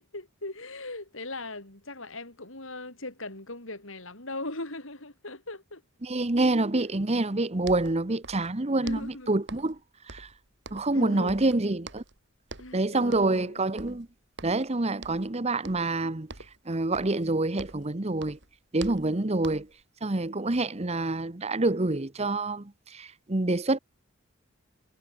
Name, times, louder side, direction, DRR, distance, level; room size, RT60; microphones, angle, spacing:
voice 1, 0.0-5.8 6.7-6.8 8.8-9.3 10.9-11.4 12.6-13.6, left 2 dB, 65° left, 6.0 m, -39 dB
voice 2, 6.0-9.8 10.1-10.3 10.7-12.0 12.7-14.1 14.4-16.3 16.7-18.4 18.7-19.7 20.0-23.8, right 2 dB, 30° right, 1.0 m, -27 dB
sound 1, 7.3-7.4 7.6-8.6 8.8-9.8 10.1-11.0 11.3-12.2 12.5-12.8 13.1-13.5 13.8-14.7 15.0-15.3 15.6-16.0 16.3-17.9 18.2-19.8, right 3 dB, 55° right, 4.6 m, -45 dB
head